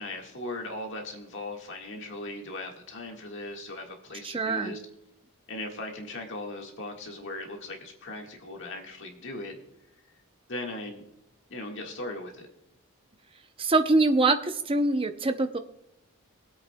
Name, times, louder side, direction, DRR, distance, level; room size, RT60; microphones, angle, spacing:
voice 1, 0.0-4.8 5.5-9.6 10.5-11.0 11.5-12.5, left 1 dB, 55° left, 2 dB, 1.7 m, -38 dB
voice 2, 4.2-4.7 13.6-15.6, right 2 dB, 25° right, 8 dB, 0.6 m, -24 dB
21.0 x 8.4 x 2.3 m, 0.84 s
head